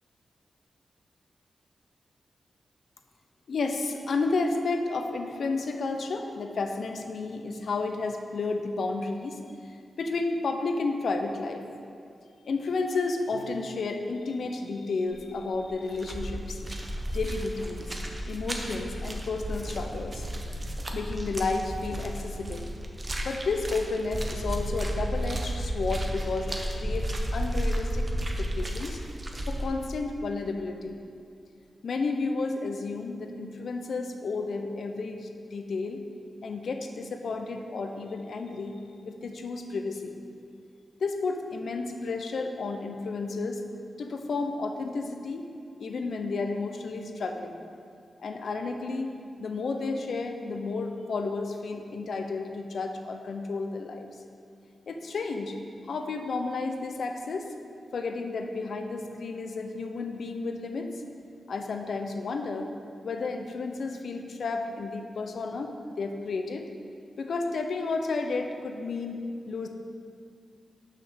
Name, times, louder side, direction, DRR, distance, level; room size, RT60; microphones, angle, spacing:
voice 1, 3.5-9.4 9.7-11.7 12.4-16.6 17.1-20.3 20.9-22.7 23.2-28.1 28.4-29.0 29.5-31.0 31.8-36.0 36.4-38.8 39.1-40.2 41.0-43.6 44.0-45.5 45.8-47.6 48.2-49.1 49.4-54.1 54.9-55.6 55.8-57.5 57.9-61.0 61.5-62.7 63.0-66.7 67.2-69.2 69.5-69.7, left 3 dB, 75° left, 5 dB, 0.7 m, -32 dB
sound 1, 15.1-15.4 15.6-29.7, right 1 dB, 30° right, 0.9 m, -33 dB
6.5 x 5.8 x 6.4 m, 2.4 s
wide cardioid pair, 90°, 0 cm